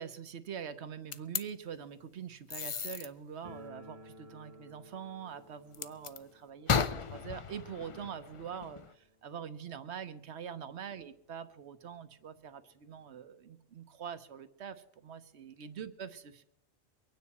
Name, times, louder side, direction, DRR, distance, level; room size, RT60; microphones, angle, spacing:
voice 1, 0.0-16.4, right 7 dB, 75° right, 11 dB, 1.2 m, -44 dB
sound 1, 1.1-1.4 2.5-3.1 5.7-6.2 6.7-8.9, left 6 dB, 45° left, 0.4 m, -34 dB
sound 2, 3.4-10.2 10.4-10.5 10.8-10.9 11.6-11.7 12.0-13.2, equal, 35° right, 1.0 m, -57 dB
23.5 x 9.6 x 4.2 m, 0.80 s
omnidirectional pair, 1.2 m